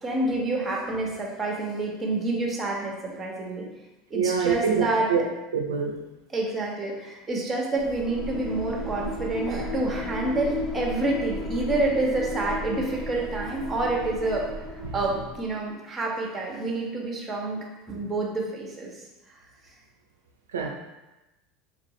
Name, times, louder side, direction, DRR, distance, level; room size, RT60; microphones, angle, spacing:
voice 1, 0.0-3.7 4.1-5.1 6.3-14.5 14.9-17.6 17.9-18.9, right 2 dB, 20° right, -1 dB, 1.1 m, -28 dB
voice 2, 4.1-5.2 5.5-6.0 14.8-15.0 20.5-20.7, right 6 dB, 85° right, 1 dB, 0.4 m, -25 dB
sound 1, 7.8-15.6, equal, 15° left, 1.0 m, -34 dB
4.6 x 2.4 x 3.1 m, 1.0 s
hypercardioid pair, 85°, 0 cm